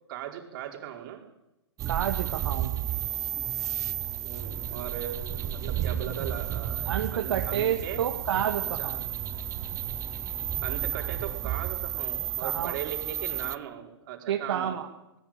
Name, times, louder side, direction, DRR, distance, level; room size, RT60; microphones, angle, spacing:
voice 1, 0.1-1.2 4.2-8.0 8.8-9.0 10.6-14.8, right 11 dB, 50° right, 3 dB, 4.7 m, -38 dB
sound 1, 1.8-13.6, right 11 dB, 20° right, 0.9 m, -32 dB
voice 2, 1.9-2.7 6.9-9.0 12.4-12.8 14.3-14.9, right 9 dB, 65° right, 3 dB, 2.2 m, -29 dB
sound 2, 4.3-11.2, left 1 dB, 15° left, 5.2 m, -44 dB
19.5 x 19.5 x 9.0 m, 0.92 s
hypercardioid pair, 130°, 15 cm